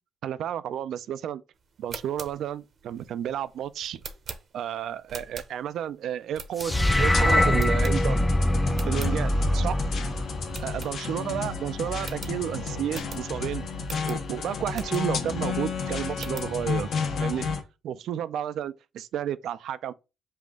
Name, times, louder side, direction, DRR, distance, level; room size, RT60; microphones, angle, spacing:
voice 1, 0.2-1.4 1.8-4.0 4.5-8.3 8.8-9.8 10.6-13.7 14.1-16.9 17.2-17.5 17.8-19.9, right 10 dB, 75° right, 0.4 m, -31 dB
sound 1, 1.7-5.9 6.3-7.1 7.6-8.4 8.7-9.2 9.6-9.7 9.9-10.1 10.5-11.4 11.7-11.8 12.0-15.3 15.8-16.6, right 5 dB, 55° right, 0.8 m, -43 dB
sound 2, 6.6-11.0, left 1 dB, 10° left, 0.4 m, -23 dB
sound 3, 6.7-17.6, left 5 dB, 65° left, 1.1 m, -32 dB
5.5 x 2.4 x 3.5 m
cardioid pair, 90°, 0 cm